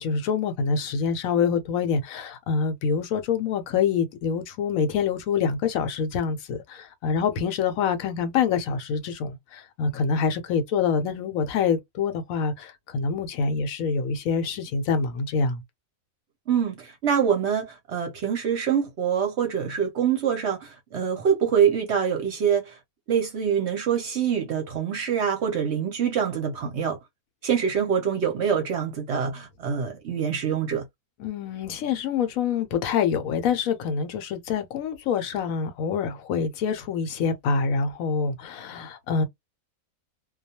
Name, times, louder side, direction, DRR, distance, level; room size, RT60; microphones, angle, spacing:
voice 1, 0.0-15.6 31.2-39.2, left 6 dB, 75° left, 1.0 m, -26 dB
voice 2, 16.5-22.8 23.1-27.0 27.4-30.8, right 7 dB, 60° right, 0.8 m, -25 dB
2.3 x 2.2 x 2.8 m
omnidirectional pair, 1.5 m